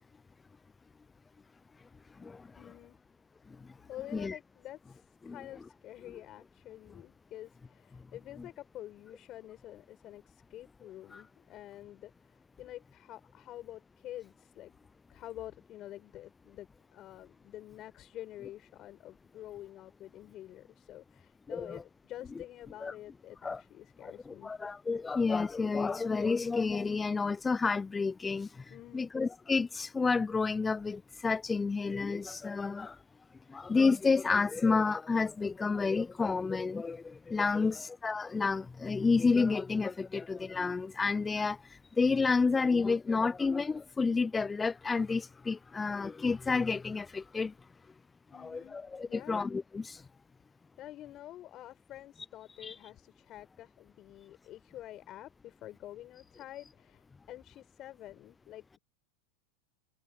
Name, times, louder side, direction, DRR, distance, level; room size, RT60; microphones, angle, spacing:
voice 1, 2.6-3.0 3.9-14.7 15.1-24.5 28.7-29.1 37.5-37.9 48.3-48.8 49.1-49.4 50.8-58.8, left 13 dB, 40° left, 6.8 m, -48 dB
voice 2, 21.5-21.8 22.8-22.9 23.4-23.6 24.0-28.5 28.9-33.0 33.5-41.6 42.0-47.5 48.4-50.0 52.6-52.7, left 4 dB, 15° left, 0.4 m, -30 dB
hypercardioid pair, 105°, 0 cm